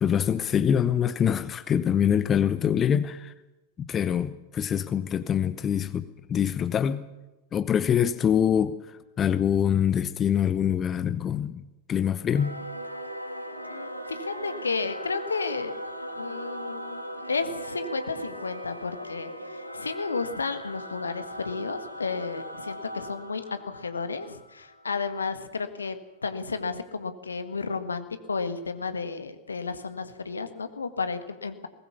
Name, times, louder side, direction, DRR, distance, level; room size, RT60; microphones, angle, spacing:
voice 1, 0.0-3.3 3.9-7.1 7.5-12.6, left 8 dB, 25° left, 14 dB, 0.9 m, -25 dB
Singing / Musical instrument, 12.2-25.1, equal, 85° right, 2.0 m, -38 dB
voice 2, 13.7-15.7 16.1-17.0 17.3-26.0 26.2-31.7, left 4 dB, 75° left, 9 dB, 1.7 m, -32 dB
21.5 x 20.0 x 7.0 m, 1.1 s
figure-of-eight pair, 90°, 0 cm